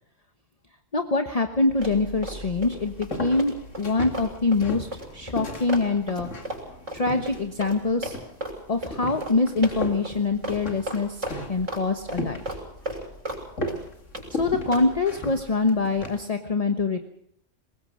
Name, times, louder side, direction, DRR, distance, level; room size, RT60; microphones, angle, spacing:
voice 1, 0.9-4.9 5.1-6.3 6.9-8.2 8.7-12.4 14.3-17.0, left 3 dB, 30° left, 6 dB, 1.2 m, -24 dB
sound 1, 1.7-16.2, left 1 dB, 90° left, 2.7 m, -37 dB
Run, 1.8-2.7 3.0-8.6 8.8-9.0 9.2-9.4 9.6-10.2 10.4-10.6 10.9-11.8 12.1-13.4 13.7-14.3 14.7-14.9, right 1 dB, 80° right, 7.2 m, -34 dB
22.5 x 20.0 x 6.3 m, 0.71 s
omnidirectional pair, 1.2 m